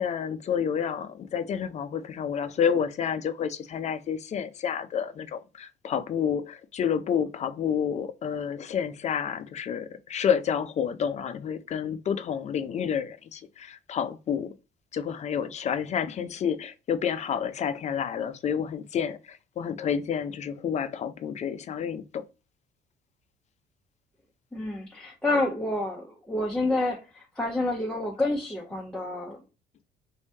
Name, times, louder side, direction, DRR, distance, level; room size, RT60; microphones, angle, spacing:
voice 1, 0.0-14.5 14.9-22.2, left 7 dB, 40° left, 0.5 m, -29 dB
voice 2, 24.5-29.4, left 2 dB, 5° left, 0.7 m, -29 dB
3.1 x 2.7 x 3.3 m
cardioid pair, 110°, 17 cm